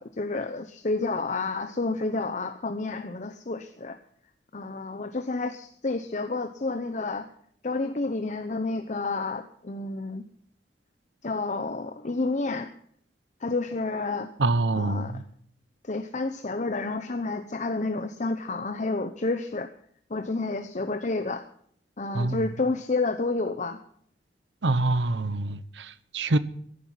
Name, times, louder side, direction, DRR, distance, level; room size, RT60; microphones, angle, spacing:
voice 1, 0.0-4.0 4.5-7.3 7.6-10.2 11.2-12.7 13.4-14.3 14.8-15.2 15.8-19.7 20.1-21.5 22.0-23.8, left 3 dB, 45° left, 0.8 m, -30 dB
voice 2, 14.4-15.2 22.1-22.5 24.6-26.4, right 2 dB, 90° right, 0.9 m, -25 dB
15.5 x 11.5 x 5.7 m
head